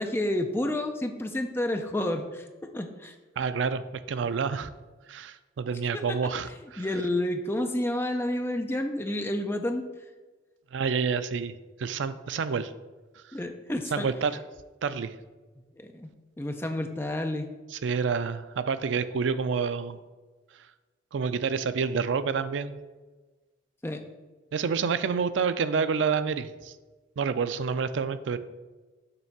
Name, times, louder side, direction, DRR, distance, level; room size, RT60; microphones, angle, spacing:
voice 1, 0.0-2.5 2.7-3.1 5.9-6.2 6.8-9.8 13.3-14.1 15.8-16.1 16.4-17.5 23.8-24.0, left 1 dB, 15° left, 5 dB, 0.5 m, -30 dB
voice 2, 3.4-4.7 5.1-6.8 10.7-12.7 13.9-14.3 14.8-15.2 17.7-20.0 21.1-22.7 24.5-26.7 27.2-28.4, right 5 dB, 80° right, 12 dB, 0.4 m, -28 dB
6.8 x 3.2 x 5.9 m, 1.2 s
head